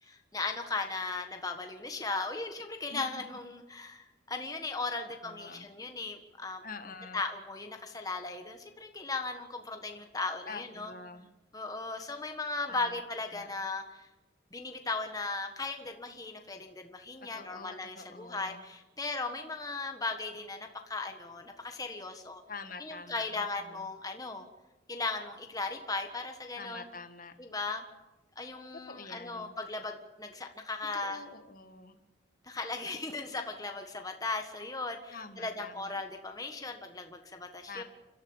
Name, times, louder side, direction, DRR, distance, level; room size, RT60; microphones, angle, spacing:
voice 1, 0.0-6.6 7.1-10.9 11.5-14.1 14.5-22.4 22.8-24.4 24.9-26.8 27.4-27.8 28.4-31.2 32.4-37.8, left 3 dB, 20° left, 5 dB, 1.5 m, -37 dB
voice 2, 5.2-5.7 6.6-7.2 10.5-11.3 12.7-13.0 13.3-13.5 17.3-18.7 22.5-23.8 26.6-27.3 28.9-29.5 30.9-32.0 35.1-36.0 37.7-37.8, left 4 dB, 45° left, 7 dB, 1.8 m, -46 dB
29.5 x 13.0 x 7.3 m, 1.1 s
head